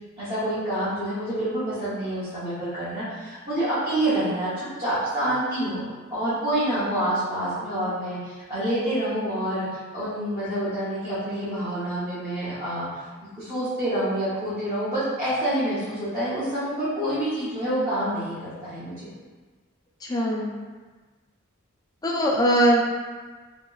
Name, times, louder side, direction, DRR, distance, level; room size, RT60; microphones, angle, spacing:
voice 1, 0.2-5.8 6.1-12.9 13.3-19.1, right 1 dB, 20° right, -16 dB, 0.8 m, -27 dB
voice 2, 20.0-20.5 22.0-22.9, right 1 dB, 15° left, -2 dB, 0.3 m, -21 dB
2.9 x 2.8 x 2.3 m, 1.4 s
head